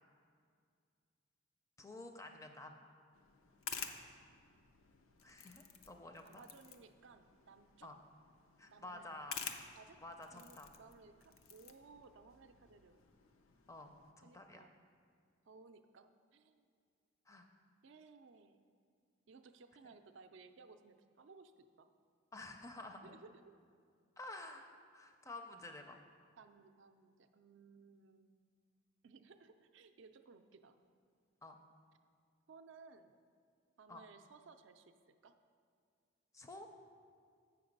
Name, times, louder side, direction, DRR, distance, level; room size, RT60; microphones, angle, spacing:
voice 1, 1.8-2.8 5.2-6.4 7.8-8.0 8.6-9.5 10.0-10.7 13.7-14.7 17.3-17.5 22.3-23.1 24.2-26.0 31.4-31.6 33.9-34.0 36.3-36.7, left 2 dB, 15° left, 5 dB, 0.4 m, -51 dB
sound 1, 3.1-14.1, left 7 dB, 85° left, 0.5 m, -51 dB
voice 2, 6.2-7.9 8.7-9.4 9.8-10.0 10.3-13.0 14.2-14.7 15.5-16.7 17.8-18.6 19.3-21.9 23.0-23.4 26.4-28.3 29.0-30.8 32.5-33.1 33.8-35.0 35.2-35.4, right 4 dB, 65° right, 9 dB, 0.4 m, -60 dB
7.8 x 5.8 x 5.2 m, 2.2 s
head